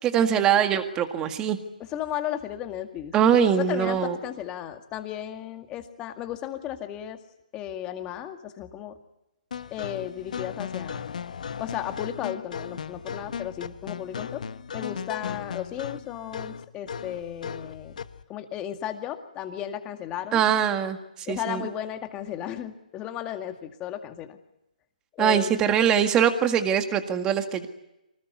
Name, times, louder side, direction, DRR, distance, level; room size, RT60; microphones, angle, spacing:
voice 1, 0.0-1.6 3.1-4.2 20.3-21.0 21.3-21.7 25.2-27.7, right 8 dB, 15° right, 8 dB, 1.9 m, -22 dB
voice 2, 1.9-3.1 3.6-7.2 7.5-9.0 9.7-11.1 11.6-14.4 14.7-17.9 18.3-20.4 21.3-24.4 25.1-25.5, left 11 dB, 15° left, 7 dB, 2.0 m, -34 dB
sound 1, 9.5-18.2, left 7 dB, 60° left, 1.3 m, -36 dB
24.5 x 19.5 x 9.6 m, 0.89 s
hypercardioid pair, 155°, 5 cm